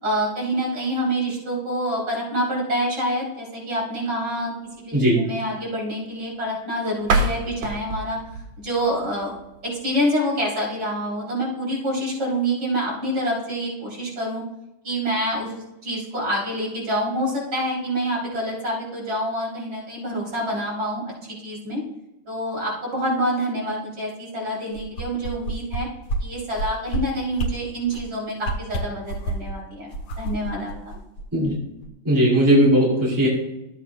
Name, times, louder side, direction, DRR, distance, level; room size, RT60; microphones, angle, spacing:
voice 1, 0.0-4.5 4.9-8.2 8.6-14.4 14.8-21.1 21.4-21.8 22.3-25.9 26.2-29.9 30.2-30.9, equal, 55° right, -5 dB, 4.1 m, -27 dB
voice 2, 4.9-5.2 31.3-31.6 32.0-33.3, equal, 10° right, -5 dB, 2.5 m, -18 dB
sound 1, 7.0-9.9, right 2 dB, 75° right, 1.8 m, -27 dB
sound 2, 24.7-25.8 26.1-26.2 26.5-27.0 27.3-27.5 27.9-28.1 28.4-29.5 29.9-31.5 31.8-31.9, right 2 dB, 85° left, 2.1 m, -28 dB
14.0 x 8.3 x 2.3 m, 0.94 s
omnidirectional pair, 2.3 m